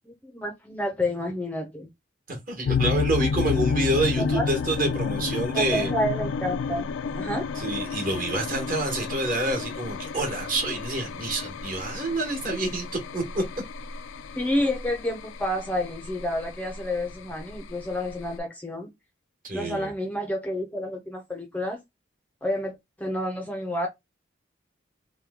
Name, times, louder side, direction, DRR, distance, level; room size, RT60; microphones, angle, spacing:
voice 1, 0.1-1.9 4.3-4.5 5.5-6.9 7.2-7.4 14.4-18.9 19.5-21.8 22.4-23.9, left 1 dB, 10° left, 0.5 m, -29 dB
voice 2, 2.3-5.9 7.5-12.9 13.1-13.4 19.4-19.9, right 2 dB, 45° right, 1.2 m, -27 dB
sound 1, 2.6-18.4, left 5 dB, 80° left, 0.3 m, -31 dB
3.0 x 2.2 x 3.4 m
head